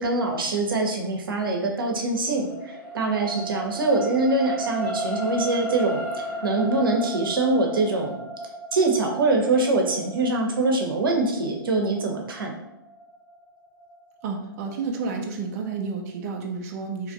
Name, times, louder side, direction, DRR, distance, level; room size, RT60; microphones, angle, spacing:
voice 1, 0.0-8.2 8.7-12.5, right 2 dB, 70° right, 2 dB, 0.9 m, -24 dB
sound 1, 1.7-14.2 14.7-14.9, right 1 dB, 10° left, 0.4 m, -35 dB
voice 2, 14.2-17.1, right 4 dB, 45° right, 2 dB, 0.6 m, -31 dB
3.0 x 2.5 x 3.9 m, 0.86 s
hypercardioid pair, 120°, 12 cm